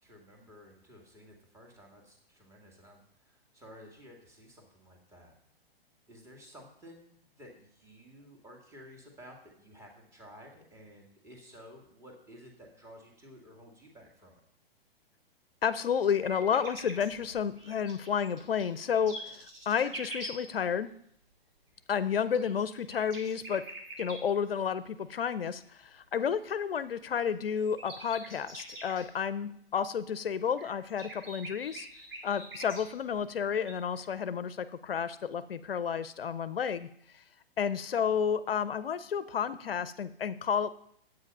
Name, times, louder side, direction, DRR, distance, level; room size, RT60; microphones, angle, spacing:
voice 1, 0.0-5.3 6.1-14.4, equal, 10° right, 1 dB, 2.0 m, -53 dB
voice 2, 15.6-20.9 21.9-23.6 24.0-31.9 32.2-36.9 37.6-40.7, left 7 dB, 70° left, 14 dB, 0.7 m, -31 dB
sound 1, 16.2-20.4 22.0-24.2 27.2-27.3 27.6-29.0 30.5-33.2 33.7-34.2, right 1 dB, 70° right, 4.8 m, -45 dB
9.6 x 8.1 x 5.4 m, 0.68 s
figure-of-eight pair, 120°, 30 cm